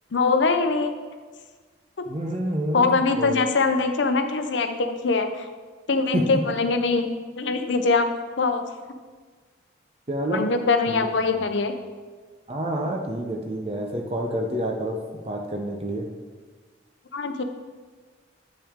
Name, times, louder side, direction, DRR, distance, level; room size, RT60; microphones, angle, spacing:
voice 1, 0.1-0.9 2.0-2.1 2.7-5.5 5.9-8.1 8.4-8.6 10.3-11.7 17.1-17.4, left 4 dB, 75° left, 7 dB, 0.7 m, -23 dB
voice 2, 2.1-3.4 6.1-6.4 10.1-10.4 10.9-11.1 12.5-16.0, right 1 dB, 30° right, 2 dB, 0.6 m, -28 dB
8.5 x 5.8 x 3.6 m, 1.4 s
head